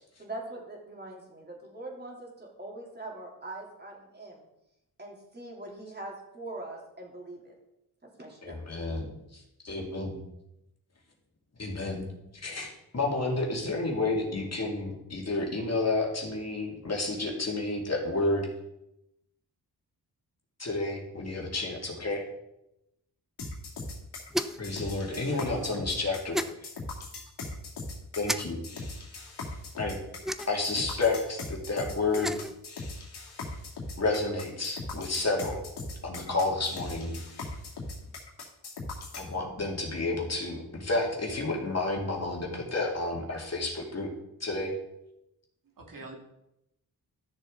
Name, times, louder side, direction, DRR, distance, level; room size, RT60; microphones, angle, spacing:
voice 1, 0.2-4.4 5.0-7.5 8.2-8.5, right 2 dB, 25° right, -1 dB, 3.2 m, -42 dB
voice 2, 8.4-9.1 9.6-10.2 11.6-12.1 12.4-18.5 20.6-22.2 24.6-26.7 28.2-28.6 29.7-30.0 30.5-32.3 34.0-35.6 36.0-37.5 39.1-44.1 44.4-44.7, left 2 dB, 40° left, 0 dB, 2.5 m, -30 dB
sound 1, 23.4-39.3, left 3 dB, 80° left, 2.5 m, -39 dB
sound 2, 24.3-24.7 26.3-26.5 28.2-28.4 30.2-30.7 32.0-32.6, equal, ahead, 0.5 m, -32 dB
voice 3, 25.1-25.7 45.8-46.2, right 2 dB, 55° right, 0 dB, 2.1 m, -43 dB
13.0 x 6.7 x 3.9 m, 0.86 s
cardioid pair, 75°, 39 cm